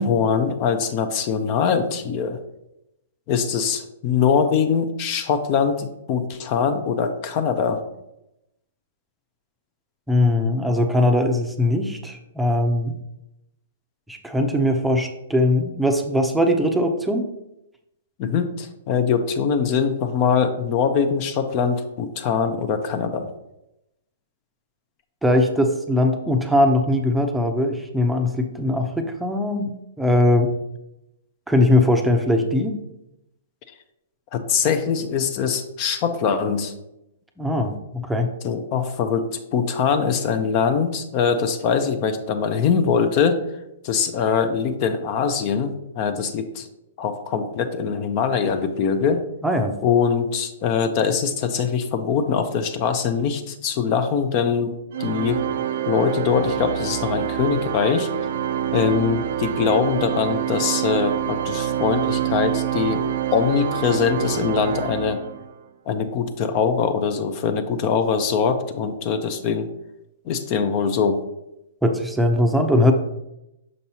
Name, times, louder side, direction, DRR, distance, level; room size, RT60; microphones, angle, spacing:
voice 1, 0.0-2.4 3.3-7.8 18.2-23.3 34.3-36.7 38.4-39.3 39.5-43.4 43.8-46.7 47.0-49.2 49.8-54.7 55.0-55.4 55.9-58.1 58.7-63.0 63.3-65.2 65.9-69.7 70.3-71.2, left 6 dB, 40° left, 8 dB, 0.6 m, -22 dB
voice 2, 10.1-12.9 14.1-17.3 25.2-29.7 30.0-30.5 31.5-32.7 37.4-38.3 49.4-49.7 71.8-72.9, left 1 dB, 5° right, 3 dB, 0.6 m, -20 dB
Organ, 54.9-65.6, right 10 dB, 60° right, 0.4 m, -26 dB
6.3 x 5.3 x 2.9 m, 0.88 s
hypercardioid pair, 120°, 0 cm